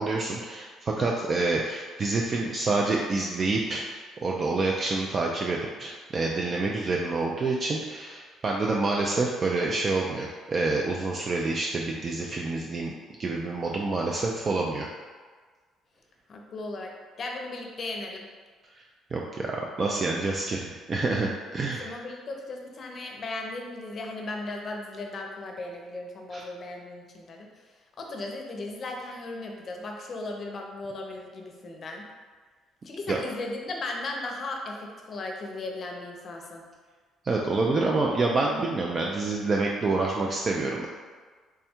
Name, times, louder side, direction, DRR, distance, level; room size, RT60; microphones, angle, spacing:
voice 1, 0.0-3.9 4.2-12.9 13.2-14.9 19.1-21.9 26.3-26.5 33.1-33.2 37.2-40.9, right 3 dB, 35° right, -1 dB, 0.3 m, -27 dB
voice 2, 16.3-16.9 17.2-18.2 21.8-27.5 28.0-32.0 32.8-36.6, left 2 dB, 40° left, 1 dB, 0.6 m, -36 dB
3.5 x 2.2 x 4.3 m, 1.5 s
cardioid pair, 110°, 0 cm